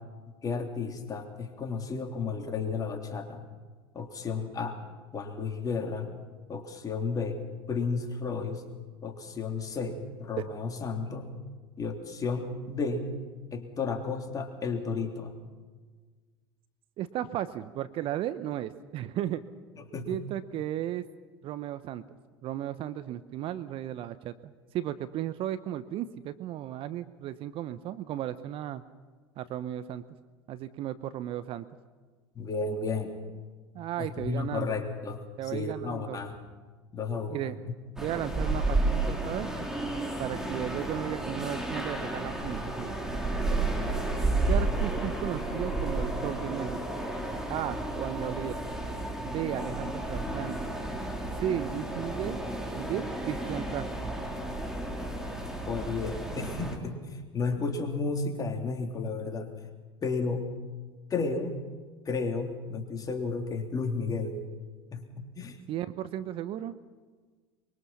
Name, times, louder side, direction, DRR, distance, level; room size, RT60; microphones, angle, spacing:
voice 1, 0.4-3.4 3.9-4.8 5.1-6.1 6.5-7.4 7.7-8.6 9.0-11.3 11.8-13.1 13.5-15.3 19.8-20.2 32.3-33.1 34.0-35.2 35.5-36.3 36.9-37.7 55.7-59.5 60.0-60.4 61.1-61.6 62.0-64.4 64.9-65.6, left 4 dB, 30° left, 4 dB, 3.3 m, -33 dB
voice 2, 17.0-19.4 20.1-21.0 21.4-22.0 22.4-28.8 29.4-30.0 30.5-31.6 33.7-34.7 35.4-36.2 37.3-37.6 38.0-39.5 40.2-43.2 43.5-43.7 44.5-46.8 47.5-48.6 49.2-50.7 51.4-52.4 52.7-54.1 65.7-66.8, right 12 dB, 45° right, 13 dB, 1.0 m, -35 dB
sound 1, 38.0-56.8, right 2 dB, 5° right, 3.6 m, -32 dB
24.0 x 23.0 x 5.8 m, 1.4 s
figure-of-eight pair, 80°, 13 cm